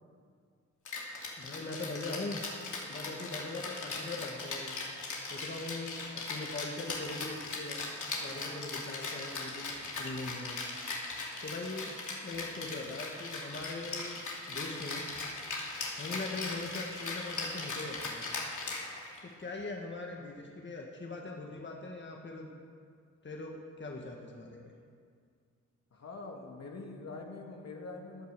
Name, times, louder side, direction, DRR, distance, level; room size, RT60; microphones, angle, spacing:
Rattle (instrument), 0.8-19.3, left 3 dB, 70° left, 2.8 m, -39 dB
voice 1, 1.4-2.4 2.9-4.7 5.3-7.8 8.2-10.6 11.1-11.9 12.2-14.2 14.5-15.0 15.9-18.3 19.2-22.5 23.2-24.7, left 2 dB, 35° left, 0 dB, 1.7 m, -41 dB
voice 2, 25.9-28.3, left 3 dB, 55° left, 1 dB, 2.1 m, -44 dB
15.0 x 9.3 x 6.8 m, 2.2 s
cardioid pair, 75°, 31 cm